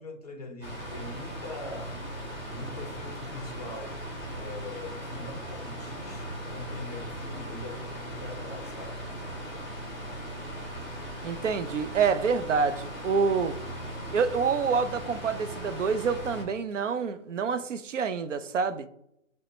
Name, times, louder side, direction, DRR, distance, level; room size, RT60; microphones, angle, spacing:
voice 1, 0.0-2.0 2.4-4.1 4.4-9.0, left 2 dB, 30° left, 0.7 m, -42 dB
sound 1, 0.6-16.4, equal, 20° right, 1.2 m, -38 dB
voice 2, 11.2-13.6 14.1-18.9, right 5 dB, 70° right, 0.5 m, -27 dB
5.1 x 2.2 x 3.0 m
hypercardioid pair, 165°, 39 cm